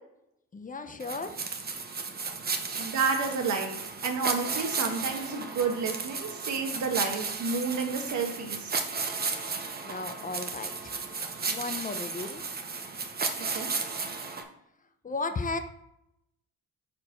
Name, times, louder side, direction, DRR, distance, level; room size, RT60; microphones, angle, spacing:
voice 1, 0.5-1.4 9.8-11.0 11.5-12.4 15.0-15.6, left 3 dB, 25° left, 8 dB, 0.7 m, -35 dB
sound 1, 1.0-14.4, right 4 dB, 30° right, 0.9 m, -34 dB
voice 2, 2.7-8.7 13.5-13.7, right 5 dB, 70° right, 4 dB, 1.4 m, -30 dB
4.8 x 4.5 x 6.0 m, 0.80 s
cardioid pair, 90°, 30 cm